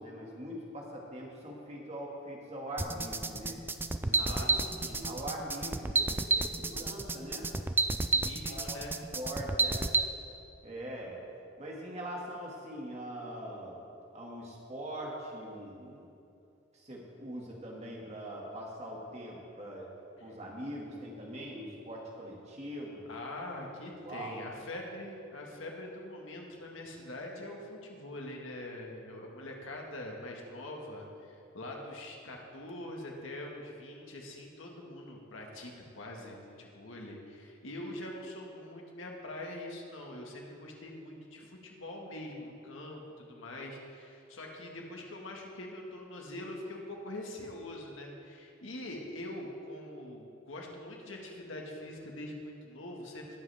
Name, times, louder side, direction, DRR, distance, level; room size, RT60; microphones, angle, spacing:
voice 1, 0.0-3.6 4.0-7.5 8.1-8.8 9.1-9.9 10.6-11.2 11.6-13.8 14.1-16.1 16.7-19.9 20.2-23.1 24.0-24.4, equal, 35° right, -3 dB, 2.0 m, -42 dB
sound 1, 2.8-10.0, right 3 dB, 10° right, 0.3 m, -30 dB
voice 2, 4.1-5.0 8.1-9.0 20.2-20.3 23.1-53.4, left 1 dB, 80° left, 0 dB, 1.7 m, -43 dB
19.5 x 7.7 x 3.5 m, 2.7 s
head